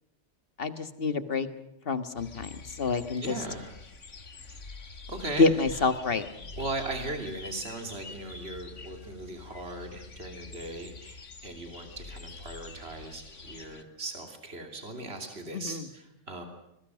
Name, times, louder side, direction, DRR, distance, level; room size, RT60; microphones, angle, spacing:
voice 1, 0.6-1.5 1.9-3.4 5.4-6.3 15.5-15.8, left 3 dB, 50° left, 11 dB, 1.8 m, -27 dB
sound 1, 2.2-13.8, left 4 dB, 90° left, 2.2 m, -46 dB
voice 2, 3.2-3.8 4.8-5.9 6.5-16.5, right 2 dB, 60° right, 5 dB, 3.4 m, -38 dB
26.0 x 22.0 x 6.4 m, 0.87 s
omnidirectional pair, 1.2 m